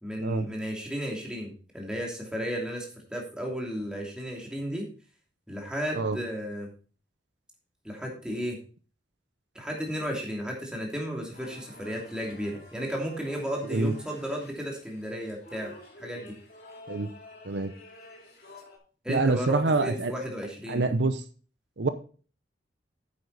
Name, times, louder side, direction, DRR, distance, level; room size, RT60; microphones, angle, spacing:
voice 1, 0.0-4.9 5.5-6.7 7.8-8.6 9.5-16.3 19.0-20.8, equal, 5° right, -1 dB, 2.8 m, -34 dB
sound 1, 11.3-18.8, left 1 dB, 55° left, 3.1 m, -50 dB
voice 2, 19.1-20.1 20.7-21.2 21.8-21.9, right 3 dB, 70° right, 10 dB, 0.8 m, -26 dB
9.6 x 8.0 x 4.1 m, 0.38 s
head